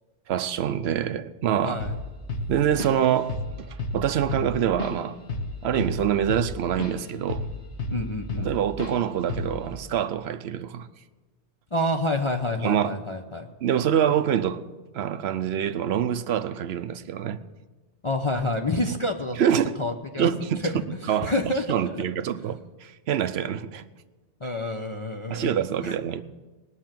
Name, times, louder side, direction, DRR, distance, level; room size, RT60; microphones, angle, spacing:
voice 1, 0.3-1.8 2.5-5.2 5.6-7.4 8.4-10.9 12.6-12.9 13.6-14.6 14.9-17.4 19.4-19.7 20.2-20.7 21.1-21.3 21.7-23.8 25.3-26.2, right 9 dB, 65° right, 0.9 m, -25 dB
voice 2, 1.6-2.0 7.9-8.5 11.7-13.5 18.0-19.4 19.8-22.1 24.4-26.0, left 1 dB, 30° left, 0.7 m, -28 dB
Drum kit / Drum, 1.8-2.0 2.3-3.0 3.3-3.5 3.8-7.0 7.3-8.5 8.8-9.0 9.3-9.6, left 2 dB, 70° left, 1.8 m, -31 dB
19.0 x 6.5 x 7.5 m
omnidirectional pair, 1.2 m